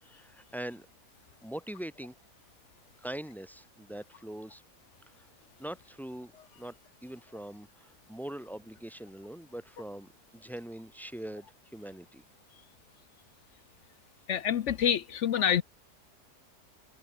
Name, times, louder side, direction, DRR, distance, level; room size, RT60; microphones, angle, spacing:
voice 1, 0.0-0.9 1.4-2.1 3.0-4.6 5.2-5.3 5.6-6.7 7.0-11.5 11.7-12.2, right 1 dB, ahead, 3.3 m, -42 dB
voice 2, 14.3-15.6, left 9 dB, 60° left, 0.8 m, -27 dB
omnidirectional pair, 1.7 m